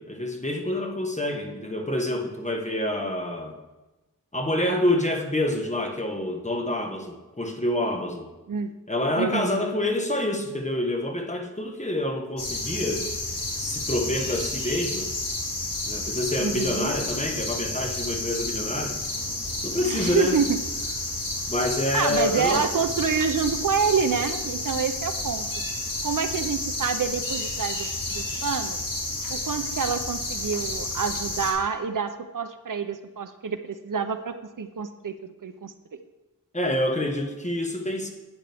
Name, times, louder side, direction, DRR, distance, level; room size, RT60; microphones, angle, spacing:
voice 1, 0.0-3.6 4.3-8.3 8.9-13.1 13.6-15.1 15.8-19.0 19.6-20.4 21.5-22.7 36.5-38.1, left 1 dB, 20° left, 3 dB, 1.3 m, -27 dB
voice 2, 9.2-9.6 16.4-16.9 19.8-20.6 21.9-25.5 26.0-28.8 29.3-35.1 35.4-35.7, right 6 dB, 70° right, 10 dB, 0.7 m, -27 dB
sound 1, 12.4-31.5, left 2 dB, 80° left, 1.9 m, -31 dB
10.5 x 8.7 x 3.5 m, 1.1 s
wide cardioid pair, 60°, 33 cm